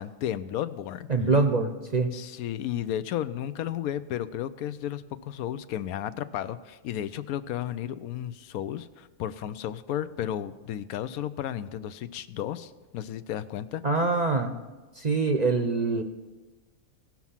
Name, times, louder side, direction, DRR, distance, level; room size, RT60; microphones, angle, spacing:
voice 1, 0.0-1.1 2.1-13.8, left 11 dB, 85° left, 13 dB, 1.1 m, -33 dB
voice 2, 1.1-2.1 13.8-14.6 15.0-16.0, right 3 dB, 40° right, 5 dB, 0.6 m, -24 dB
17.5 x 6.0 x 5.6 m, 1.2 s
omnidirectional pair, 1.5 m